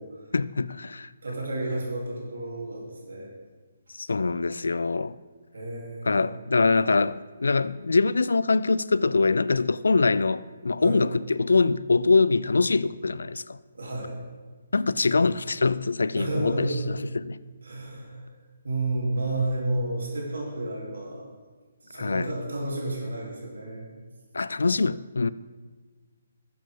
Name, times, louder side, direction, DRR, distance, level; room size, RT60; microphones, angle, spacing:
voice 1, 0.3-1.1 3.9-5.2 6.1-13.6 14.7-16.7 17.1-17.4 21.9-22.3 24.3-25.3, left 3 dB, 80° left, 0.3 m, -23 dB
voice 2, 1.2-3.3 5.5-6.3 10.8-11.0 13.7-14.1 15.2-15.3 16.1-17.0 17.6-18.3 18.6-21.3 21.8-23.9, right 2 dB, 75° right, 3.4 m, -31 dB
13.0 x 7.7 x 3.8 m
figure-of-eight pair, 145°, 0 cm